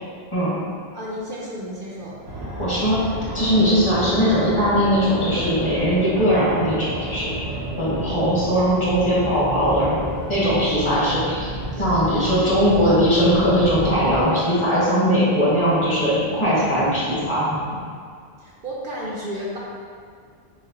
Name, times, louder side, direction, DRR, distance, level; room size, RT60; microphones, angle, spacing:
voice 1, 0.9-2.2 18.4-19.6, equal, 60° right, -5 dB, 0.7 m, -32 dB
sound 1, 2.0-17.8, equal, 45° left, 0.8 m, -40 dB
Fixed-wing aircraft airplane, 2.2-14.2, equal, 80° right, 1.1 m, -31 dB
voice 2, 2.6-3.0 3.3-7.3 7.8-10.0 10.3-11.5 11.8-17.5, equal, 30° left, -9 dB, 1.1 m, -20 dB
6.2 x 2.1 x 2.8 m, 2.1 s
omnidirectional pair, 1.1 m